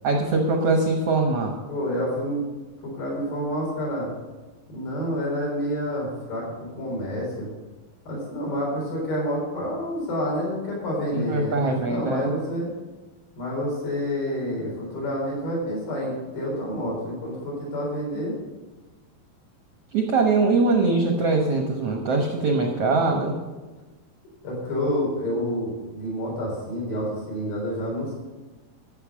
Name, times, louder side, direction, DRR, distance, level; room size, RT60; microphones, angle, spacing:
voice 1, 0.0-1.5 11.1-12.3 19.9-23.3, right 3 dB, 70° right, 2 dB, 1.4 m, -22 dB
voice 2, 1.7-2.5 2.8-4.1 4.7-7.5 8.1-12.7 13.4-18.4 24.4-28.1, equal, 75° left, -3 dB, 6.0 m, -28 dB
13.5 x 7.4 x 6.2 m, 1.2 s
omnidirectional pair, 4.3 m